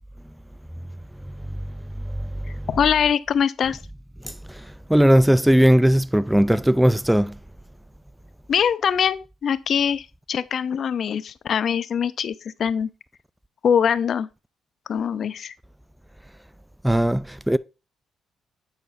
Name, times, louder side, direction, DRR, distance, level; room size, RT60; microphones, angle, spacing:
voice 1, 2.7-3.8 8.5-12.3 12.6-12.9 13.6-14.3 14.9-15.5, left 8 dB, 60° left, 0.6 m, -23 dB
voice 2, 4.2-7.4 16.8-17.6, equal, 5° right, 0.3 m, -18 dB
8.2 x 6.3 x 2.6 m
cardioid pair, 90°, 0 cm